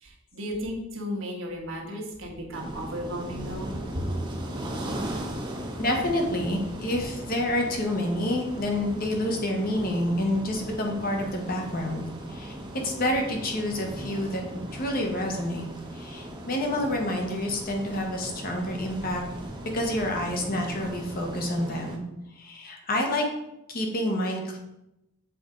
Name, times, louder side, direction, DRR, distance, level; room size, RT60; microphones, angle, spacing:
voice 1, 0.0-4.1, equal, 65° right, 0 dB, 1.3 m, -34 dB
sound 1, 2.5-22.0, right 1 dB, 20° right, 0.8 m, -38 dB
voice 2, 5.8-12.6 12.8-14.4 14.7-15.7 15.9-19.2 19.6-22.0 22.3-23.2 23.7-24.6, left 1 dB, 45° left, 1 dB, 1.1 m, -28 dB
7.1 x 4.3 x 3.8 m, 0.89 s
head